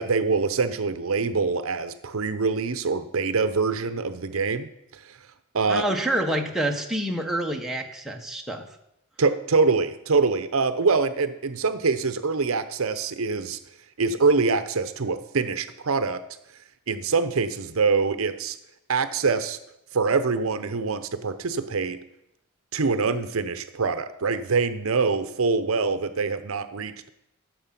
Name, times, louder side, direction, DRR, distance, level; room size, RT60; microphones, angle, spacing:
voice 1, 0.0-5.2 5.5-5.8 9.2-13.6 14.0-16.2 16.9-18.6 18.9-19.6 19.9-22.0 22.7-27.1, right 4 dB, 65° right, 11 dB, 0.7 m, -24 dB
voice 2, 5.7-8.7, right 1 dB, ahead, 1 dB, 1.0 m, -27 dB
12.5 x 7.4 x 5.8 m, 0.83 s
head